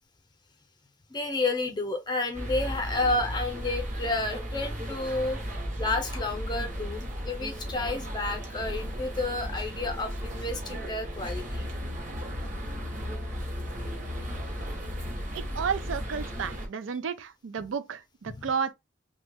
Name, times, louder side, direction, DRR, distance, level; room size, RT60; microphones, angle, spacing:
voice 1, 1.1-11.7 18.3-18.4, left 2 dB, 20° left, 0.6 m, -31 dB
sound 1, 2.3-16.7, equal, 40° right, 0.9 m, -35 dB
voice 2, 15.3-18.7, right 6 dB, 90° right, 0.4 m, -32 dB
3.0 x 2.3 x 3.3 m
head